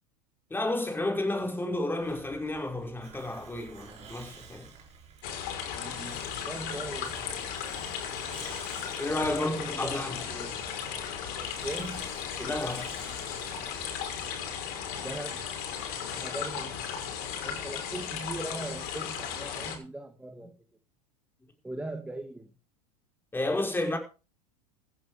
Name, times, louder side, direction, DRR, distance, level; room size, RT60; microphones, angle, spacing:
voice 1, 0.5-4.7 9.0-10.3 12.4-13.0 23.3-24.0, left 2 dB, 10° left, 5.5 m, -31 dB
Hiss, 2.0-15.5, right 6 dB, 30° right, 7.5 m, -51 dB
Stream in a Beech Forest, 5.2-19.8, left 8 dB, 50° left, 5.8 m, -36 dB
voice 2, 5.8-7.4 9.2-10.0 10.3-10.6 11.6-12.1 15.0-15.4 16.1-16.8 17.4-20.5 21.6-22.5, right 2 dB, 5° right, 2.2 m, -39 dB
15.5 x 10.0 x 5.1 m
hypercardioid pair, 95°, 20 cm